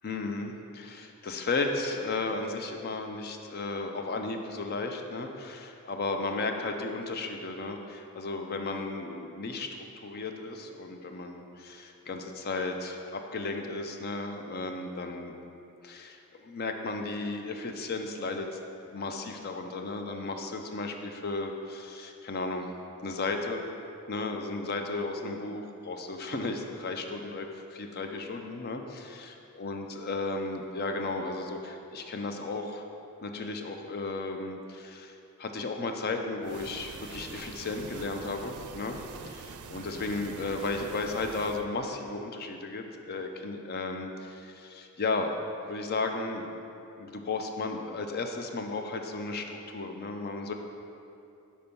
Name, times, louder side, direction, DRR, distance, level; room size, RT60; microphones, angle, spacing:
voice 1, 0.0-9.7 10.0-15.4 15.8-18.5 18.9-22.7 23.0-23.7 24.1-32.8 33.2-39.0 39.2-45.4 45.7-46.5 47.0-50.5, left 3 dB, 45° left, 4 dB, 0.5 m, -34 dB
sound 1, 36.4-41.7, right 5 dB, 80° right, 0.4 m, -45 dB
5.8 x 4.3 x 5.3 m, 2.7 s
head